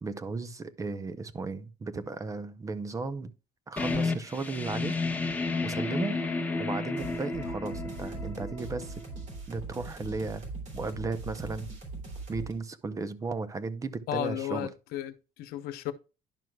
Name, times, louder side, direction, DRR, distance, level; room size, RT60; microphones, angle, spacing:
voice 1, 0.0-3.3 3.7-5.0 5.6-6.2 6.6-8.9 9.5-10.4 10.7-11.7 12.3-14.7, right 3 dB, 20° right, 0.6 m, -35 dB
sound 1, 3.8-9.2, left 3 dB, 10° left, 1.1 m, -32 dB
sound 2, 7.0-12.5, right 3 dB, 50° right, 2.9 m, -41 dB
voice 2, 14.1-15.9, left 12 dB, 90° left, 0.8 m, -34 dB
10.5 x 6.2 x 2.2 m
cardioid pair, 145°, 15 cm